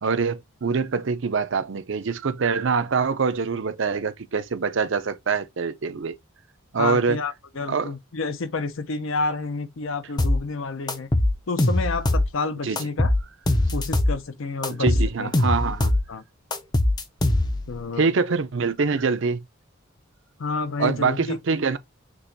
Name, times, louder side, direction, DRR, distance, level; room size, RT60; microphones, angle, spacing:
voice 1, 0.0-6.2 6.7-7.2 7.7-7.9 12.6-12.8 14.7-16.0 18.0-19.4 20.8-21.8, right 5 dB, 60° right, 0.5 m, -24 dB
voice 2, 6.8-11.1 11.5-13.1 13.7-15.3 16.1-16.2 17.7-18.1 20.4-21.4, left 3 dB, 65° left, 0.6 m, -29 dB
sound 1, 10.2-10.4 10.9-12.3 12.8-14.2 14.6-16.1 16.5-17.7, left 1 dB, 20° left, 0.5 m, -21 dB
6.1 x 2.9 x 2.7 m
head